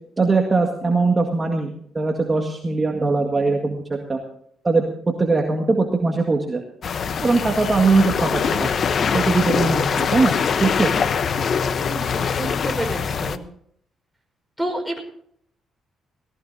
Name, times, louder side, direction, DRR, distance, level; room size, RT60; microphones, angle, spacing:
voice 1, 0.2-3.8 4.1-4.2 4.6-4.8 5.2-6.6 7.2-8.7 9.1-10.3 10.6-10.9, right 3 dB, 25° right, 2 dB, 1.9 m, -20 dB
sound 1, 6.8-13.4, left 6 dB, 55° left, 0.9 m, -23 dB
voice 2, 11.8-13.4 14.6-15.0, right 1 dB, 5° right, 2 dB, 5.2 m, -29 dB
18.5 x 17.5 x 2.8 m, 0.67 s
cardioid pair, 90°, 0 cm